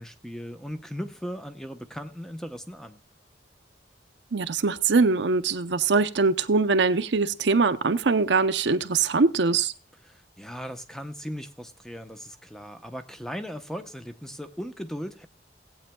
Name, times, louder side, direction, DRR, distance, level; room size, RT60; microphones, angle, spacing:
voice 1, 0.0-3.0 10.0-15.3, equal, 5° left, 0.8 m, -37 dB
voice 2, 4.3-9.7, right 4 dB, 85° right, 0.7 m, -22 dB
18.0 x 8.7 x 2.3 m
head